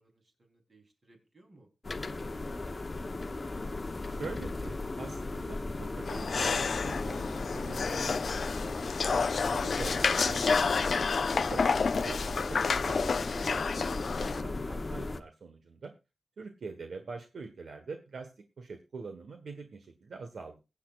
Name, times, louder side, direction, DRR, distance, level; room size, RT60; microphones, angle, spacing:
voice 1, 0.0-1.7 2.1-3.4, right 2 dB, 40° right, 2 dB, 3.5 m, -61 dB
sound 1, 1.8-15.2, left 2 dB, 30° left, 0.9 m, -36 dB
voice 2, 4.1-9.2 9.5-10.9 11.3-12.2 12.5-15.9 16.4-18.3 18.6-20.6, right 4 dB, 70° right, 6 dB, 1.4 m, -44 dB
sound 2, 6.1-14.4, left 5 dB, 60° left, 0.5 m, -30 dB
22.0 x 8.5 x 2.4 m, 0.29 s
wide cardioid pair, 130°, 0 cm